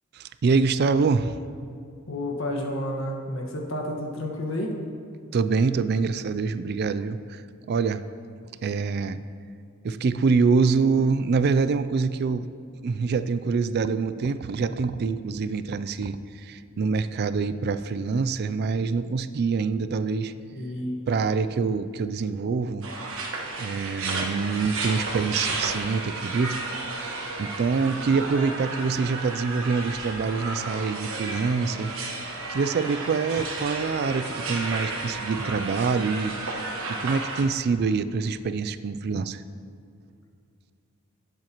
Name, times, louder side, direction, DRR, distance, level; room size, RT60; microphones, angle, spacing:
voice 1, 0.1-1.4 5.3-7.4 7.7-8.0 8.6-9.2 9.8-12.5 12.8-20.3 21.1-22.9 23.6-26.6 27.4-31.9 32.2-39.4, right 4 dB, 50° right, 13 dB, 0.4 m, -25 dB
voice 2, 2.1-4.7 20.5-21.0, left 1 dB, 65° left, 0 dB, 1.5 m, -30 dB
sound 1, 22.8-37.4, right 3 dB, 65° right, 1.4 m, -32 dB
18.5 x 7.7 x 3.0 m, 2.4 s
head